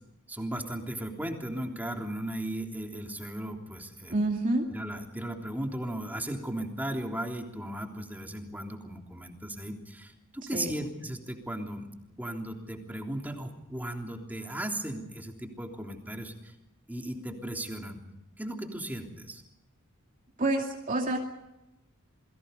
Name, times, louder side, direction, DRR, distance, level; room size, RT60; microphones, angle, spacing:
voice 1, 0.3-4.1 4.7-11.9 12.2-16.5 16.9-18.0 18.4-19.4, right 1 dB, 10° right, 2 dB, 3.3 m, -36 dB
voice 2, 4.1-4.7 10.5-10.7 20.4-21.2, right 2 dB, 40° right, 1 dB, 2.6 m, -27 dB
28.5 x 23.0 x 5.4 m, 0.92 s
head